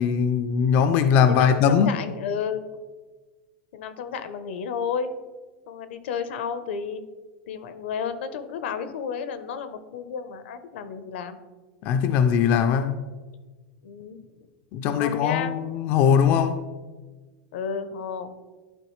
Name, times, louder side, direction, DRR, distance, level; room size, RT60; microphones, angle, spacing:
voice 1, 0.0-2.0 11.8-13.1 14.7-16.6, left 7 dB, 35° left, 9 dB, 0.3 m, -20 dB
voice 2, 1.3-2.8 3.7-5.1 5.7-7.0 7.5-11.4 13.8-14.2 15.0-15.6 17.5-18.3, left 6 dB, 80° left, 11 dB, 0.7 m, -32 dB
11.0 x 4.3 x 3.1 m, 1.3 s
supercardioid pair, 170°, 6 cm